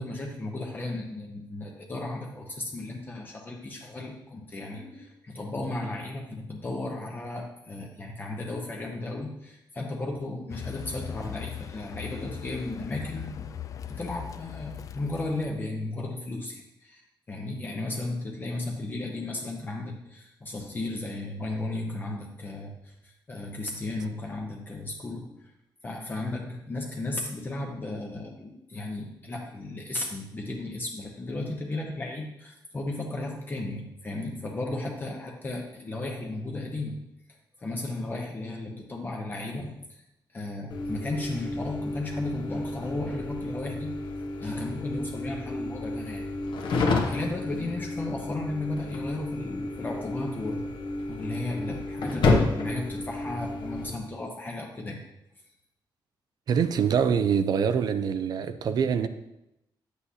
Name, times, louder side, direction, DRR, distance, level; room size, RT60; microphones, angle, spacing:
voice 1, 0.0-13.6 13.9-25.5 25.8-36.9 37.6-40.0 40.3-44.0 44.4-46.2 46.7-55.0, left 2 dB, 25° left, 0 dB, 0.8 m, -35 dB
Car, 10.5-15.6, left 8 dB, 40° left, 0.3 m, -39 dB
sound 1, 40.7-53.9, left 2 dB, 70° left, 1.2 m, -30 dB
voice 2, 56.5-59.1, right 7 dB, 55° right, 11 dB, 0.5 m, -24 dB
9.6 x 8.0 x 2.8 m, 0.86 s
wide cardioid pair, 175°, 8 cm